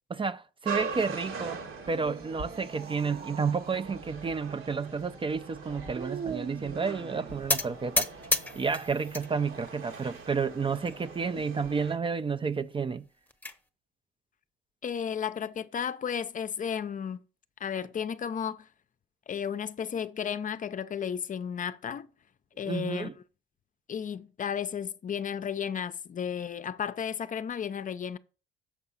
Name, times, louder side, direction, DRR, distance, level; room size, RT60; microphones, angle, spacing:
voice 1, 0.1-1.6 1.9-8.1 8.6-13.0 22.7-23.1, right 5 dB, 25° right, 0.4 m, -31 dB
sound 1, 0.6-11.9, right 4 dB, 85° right, 2.1 m, -42 dB
sound 2, 1.8-4.1 5.9-7.7 9.3-9.9, right 7 dB, 50° right, 0.8 m, -42 dB
sound 3, 7.5-9.3 9.7-10.3 10.8-11.0 11.2-11.3 11.7-11.8 12.9-13.6, left 2 dB, 10° left, 0.9 m, -31 dB
voice 2, 14.8-17.2 17.6-18.7 19.3-22.1 22.6-23.1 23.9-28.2, left 8 dB, 40° left, 0.5 m, -33 dB
7.1 x 4.8 x 5.5 m
cardioid pair, 90°, 20 cm